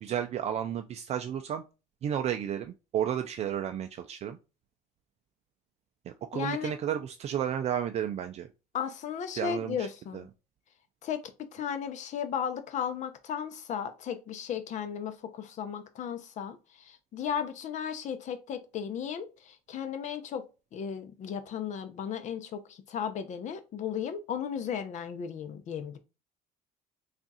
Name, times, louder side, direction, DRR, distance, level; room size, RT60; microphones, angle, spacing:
voice 1, 0.0-1.6 2.0-4.4 6.3-8.5 9.4-9.9 10.1-10.2, right 9 dB, 45° right, 0.4 m, -32 dB
voice 2, 6.3-6.7 8.7-10.3 11.0-11.2 11.5-20.4 20.7-26.0, left 8 dB, 50° left, 0.8 m, -35 dB
3.5 x 2.5 x 4.1 m
cardioid pair, 115°, 16 cm